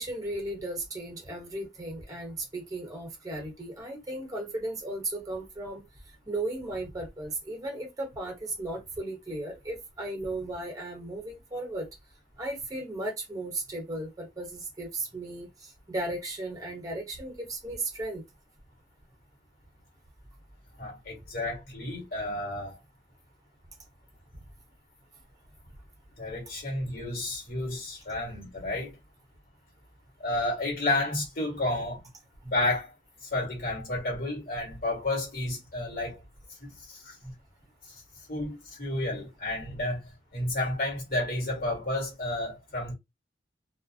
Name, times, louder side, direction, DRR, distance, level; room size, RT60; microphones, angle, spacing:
voice 1, 0.0-5.8 6.3-11.9 12.4-18.2, right 2 dB, 20° right, 0.9 m, -35 dB
voice 2, 20.8-22.8 26.2-29.0 30.2-32.1 32.4-32.9 33.2-36.2 36.6-37.3 37.9-38.0 38.3-42.9, left 2 dB, 50° left, 1.4 m, -31 dB
2.4 x 2.0 x 2.6 m
head